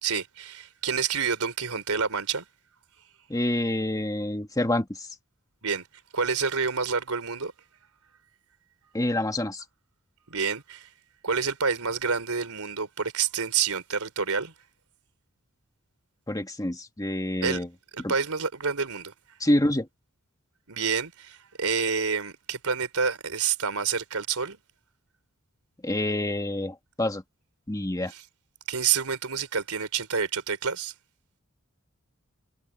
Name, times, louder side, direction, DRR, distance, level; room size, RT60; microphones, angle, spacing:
voice 1, 0.0-2.5 5.6-5.8 6.1-7.5 10.3-10.9 11.2-14.5 17.4-17.6 17.9-19.1 20.7-24.6 28.7-30.9, right 6 dB, 85° right, 3.7 m, -28 dB
voice 2, 3.3-5.1 8.9-9.6 16.3-17.7 18.0-18.1 19.4-19.9 25.8-27.2 27.7-28.1, left 1 dB, 15° left, 1.7 m, -27 dB
head